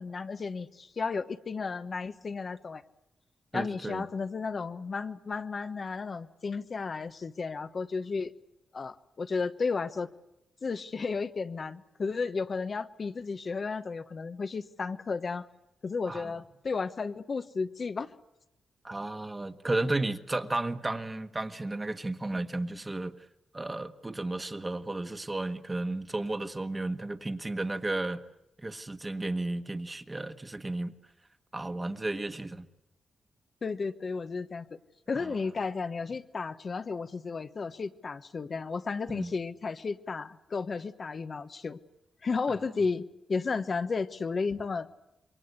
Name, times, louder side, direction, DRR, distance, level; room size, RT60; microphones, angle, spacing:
voice 1, 0.0-2.8 3.5-8.3 8.7-10.1 10.6-15.5 15.8-18.1 33.6-34.8 35.1-41.8 42.2-44.9, left 4 dB, 50° left, 9 dB, 1.1 m, -33 dB
voice 2, 3.5-4.1 16.1-16.3 18.8-23.1 23.5-28.2 28.6-30.9 31.5-32.7 35.1-35.3 39.1-39.3, right 2 dB, 25° right, 7 dB, 1.6 m, -33 dB
27.5 x 22.5 x 8.3 m, 0.87 s
cardioid pair, 75°, 0 cm